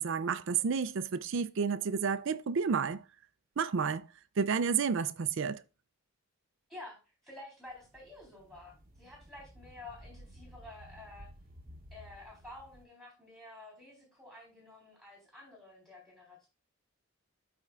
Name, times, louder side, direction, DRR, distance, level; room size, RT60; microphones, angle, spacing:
voice 1, 0.0-3.0 3.6-4.1 4.4-5.6, right 6 dB, 55° right, 0.4 m, -30 dB
voice 2, 6.7-11.3 11.9-16.5, left 2 dB, ahead, 3.5 m, -51 dB
sound 1, 7.7-12.8, equal, 40° right, 1.0 m, -54 dB
12.5 x 4.4 x 2.4 m
head